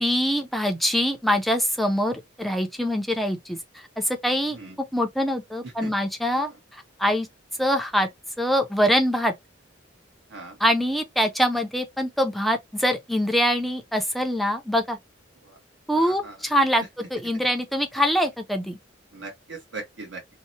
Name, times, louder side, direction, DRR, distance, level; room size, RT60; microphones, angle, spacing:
voice 1, 0.0-4.6 4.9-7.3 7.6-8.1 8.4-9.3 10.6-15.0 15.9-18.8, equal, ahead, 0.4 m, -24 dB
voice 2, 15.9-16.3 19.1-20.2, right 3 dB, 75° right, 1.0 m, -39 dB
2.7 x 2.0 x 2.6 m
head